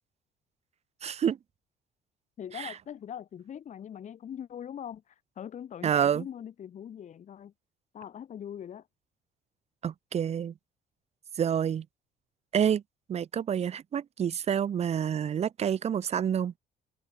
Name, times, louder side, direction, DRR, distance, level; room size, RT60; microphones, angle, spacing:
voice 1, 1.0-1.4 2.5-2.7 5.8-6.3 9.8-10.5 11.4-11.9 12.5-12.8 13.1-16.5, right 8 dB, 40° right, 0.8 m, -28 dB
voice 2, 2.4-7.5 7.9-8.9, left 9 dB, 45° left, 1.5 m, -42 dB
cardioid pair, 110°, 17 cm